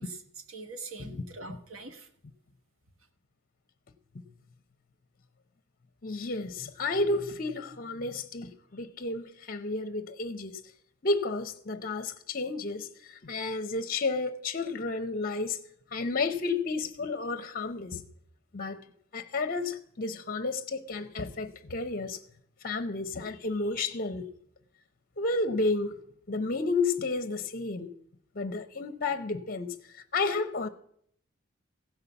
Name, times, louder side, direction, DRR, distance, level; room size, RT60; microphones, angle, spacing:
voice 1, 0.0-2.1, right 3 dB, 85° right, 1.4 m, -43 dB
voice 2, 6.0-10.5 11.0-15.6 15.9-18.0 18.5-18.8 19.1-22.2 22.6-24.3 25.2-25.9 26.3-27.9 28.4-30.7, left 3 dB, 45° left, 0.8 m, -31 dB
15.5 x 5.7 x 6.9 m
head